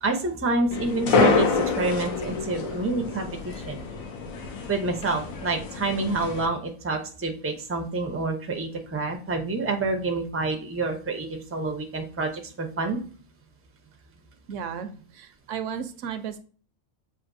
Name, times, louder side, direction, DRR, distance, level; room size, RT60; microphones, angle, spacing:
voice 1, 0.0-3.8 4.7-13.0, right 3 dB, 20° right, 3 dB, 0.3 m, -28 dB
sound 1, 0.7-6.5, left 4 dB, 80° left, 1.2 m, -27 dB
voice 2, 14.5-16.4, right 7 dB, 70° right, 10 dB, 0.9 m, -34 dB
7.3 x 2.6 x 2.6 m, 0.42 s
omnidirectional pair, 1.4 m